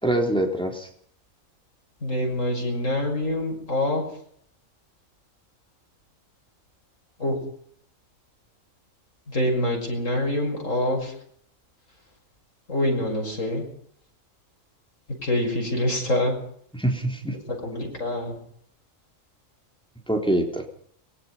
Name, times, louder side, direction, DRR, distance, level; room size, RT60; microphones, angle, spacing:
voice 1, 0.0-0.9 16.7-17.4 20.1-20.6, right 1 dB, 5° left, 2 dB, 3.6 m, -24 dB
voice 2, 2.0-4.0 7.2-7.3 9.3-11.1 12.7-13.6 15.2-16.4 17.6-18.3, left 1 dB, 70° left, 1 dB, 6.6 m, -25 dB
23.5 x 21.0 x 5.7 m, 0.62 s
omnidirectional pair, 1.4 m